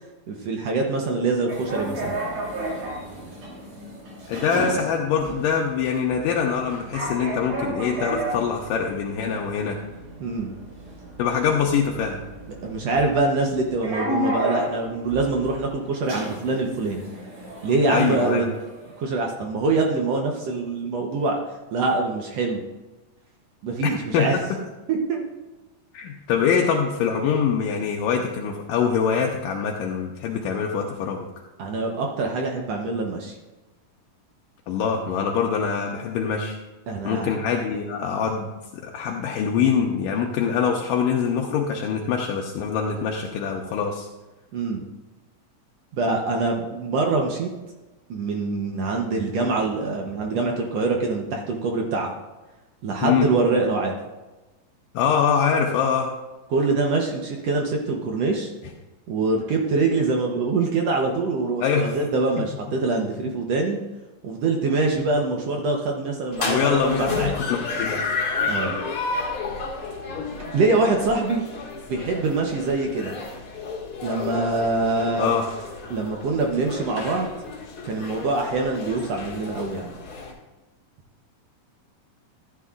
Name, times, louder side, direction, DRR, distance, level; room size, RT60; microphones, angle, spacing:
voice 1, 0.3-2.1 10.2-10.5 12.6-17.0 17.6-18.5 19.0-21.4 21.7-22.6 23.6-24.4 24.9-25.2 31.6-33.3 36.9-37.3 44.5-44.8 45.9-47.5 48.1-52.1 52.8-54.0 56.5-58.5 59.1-63.8 64.2-67.3 68.5-68.8 70.5-71.4 71.9-73.1 74.0-75.3 75.9-77.3 77.8-79.9, right 3 dB, 75° right, 1 dB, 1.5 m, -24 dB
sound 1, 1.5-19.0, right 1 dB, 60° right, 4.5 m, -33 dB
voice 2, 4.3-9.8 11.2-12.2 17.9-18.5 23.8-24.4 25.9-31.3 34.7-36.6 37.0-44.1 53.0-53.3 54.9-56.1 61.6-61.9 62.4-62.5 66.4-68.1 75.2-75.5, left 7 dB, 80° left, 1 dB, 2.2 m, -24 dB
sound 2, 66.3-80.3, left 4 dB, 45° left, 2.2 m, -31 dB
14.0 x 10.0 x 2.4 m, 1.1 s
omnidirectional pair, 4.1 m